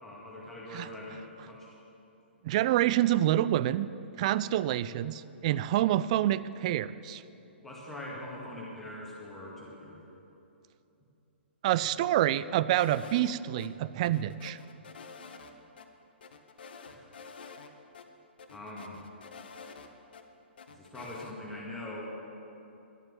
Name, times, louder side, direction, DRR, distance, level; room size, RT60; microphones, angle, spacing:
voice 1, 0.0-1.7 7.6-10.0 16.9-17.1 18.5-19.0 20.7-22.0, left 1 dB, 5° left, -5 dB, 2.0 m, -42 dB
voice 2, 2.4-3.9 4.2-7.2 11.6-14.6, right 13 dB, 35° right, 16 dB, 0.3 m, -27 dB
sound 1, 12.8-13.7 14.0-15.5 15.8-15.9 16.2-17.7 17.9-18.0 18.4-20.2 20.6-21.3, left 5 dB, 55° left, 1.0 m, -48 dB
11.5 x 8.8 x 7.9 m, 2.9 s
figure-of-eight pair, 120°, 6 cm